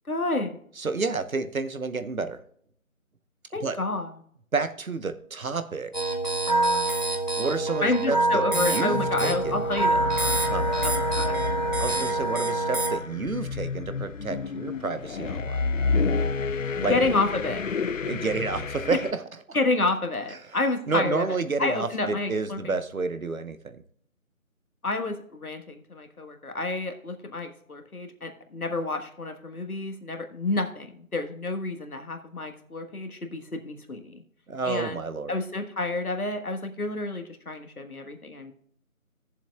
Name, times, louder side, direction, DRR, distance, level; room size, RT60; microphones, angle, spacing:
voice 1, 0.1-0.6 3.5-4.1 7.8-10.0 10.8-11.4 16.8-17.6 19.5-21.3 21.6-22.7 24.8-34.2 34.6-35.0 35.3-38.5, left 2 dB, 90° left, 6 dB, 1.5 m, -29 dB
voice 2, 0.8-2.4 3.6-3.8 4.5-6.2 7.4-9.6 10.5-10.7 11.8-15.6 16.8-16.9 18.0-19.2 20.4-20.6 20.9-23.8 34.5-35.3, right 4 dB, 70° right, 10 dB, 1.0 m, -30 dB
sound 1, 5.9-13.0, right 2 dB, 30° left, 0.8 m, -26 dB
sound 2, 8.9-19.1, left 4 dB, 65° left, 0.5 m, -30 dB
18.0 x 7.2 x 2.3 m, 0.62 s
figure-of-eight pair, 175°, 43 cm